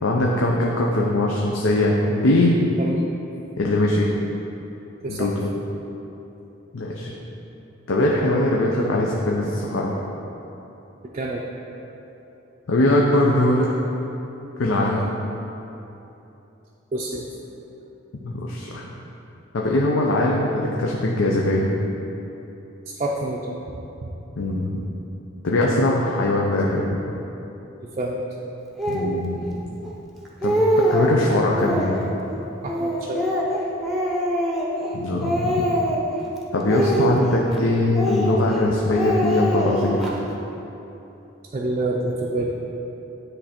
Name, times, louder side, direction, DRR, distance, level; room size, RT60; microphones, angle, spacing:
voice 1, 0.0-2.5 3.6-4.1 5.1-5.5 6.7-7.1 7.9-9.9 12.7-13.7 14.6-15.1 18.2-18.8 19.5-21.7 24.4-24.8 25.4-26.9 28.9-29.4 30.4-32.1 34.9-35.7 36.5-40.0, left 1 dB, 85° left, -2 dB, 0.6 m, -21 dB
voice 2, 16.9-17.2 22.9-23.6 24.0-24.1 28.0-28.2 32.6-33.2 41.5-42.6, right 2 dB, 35° right, -3 dB, 0.4 m, -27 dB
Speech, 28.8-29.1 29.8-29.9 30.2-31.1 31.5-32.1 32.7-34.9 35.2-36.2 36.6-37.6 37.9-38.6 38.9-40.1, equal, ahead, 0.7 m, -23 dB
9.9 x 3.3 x 4.3 m, 3.0 s
head